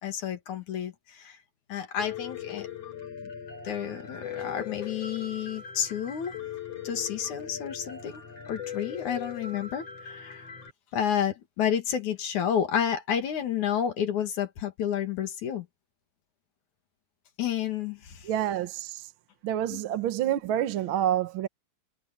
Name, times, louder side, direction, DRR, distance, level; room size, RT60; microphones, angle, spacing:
voice 1, 0.0-1.4 1.7-2.7 3.6-6.3 6.8-10.5 10.9-15.7 17.4-18.3 19.7-19.8, left 9 dB, 85° left, 3.4 m, -30 dB
Piano, 2.0-10.7, left 8 dB, 55° left, 6.0 m, -40 dB
voice 2, 18.2-19.1 19.4-21.5, right 11 dB, 65° right, 1.3 m, -28 dB
omnidirectional pair, 3.3 m